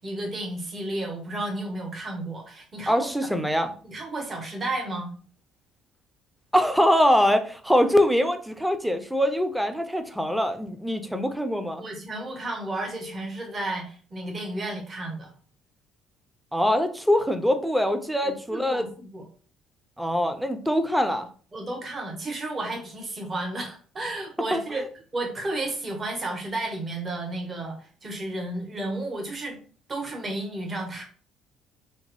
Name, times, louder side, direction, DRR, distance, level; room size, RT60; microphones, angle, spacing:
voice 1, 0.0-3.3 3.8-5.1 11.8-15.3 18.2-19.2 21.5-24.9 25.1-29.6 29.9-31.0, right 2 dB, 30° right, 1 dB, 0.9 m, -32 dB
voice 2, 2.9-3.7 6.5-11.8 16.5-18.9 20.0-21.3 24.5-24.8, equal, 5° right, 8 dB, 0.4 m, -23 dB
2.8 x 2.0 x 2.9 m, 0.42 s
figure-of-eight pair, 50°, 0 cm